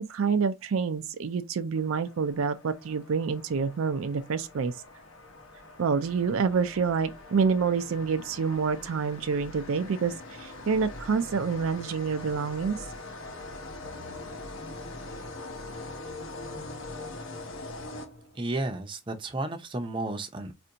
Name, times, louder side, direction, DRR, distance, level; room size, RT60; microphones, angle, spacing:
voice 1, 0.0-4.7 5.8-10.1 10.4-12.8, right 5 dB, 75° right, 0.4 m, -27 dB
sound 1, 1.8-18.6, left 2 dB, 70° left, 0.8 m, -43 dB
voice 2, 18.3-20.5, right 2 dB, 25° right, 0.5 m, -32 dB
4.3 x 2.5 x 2.8 m
head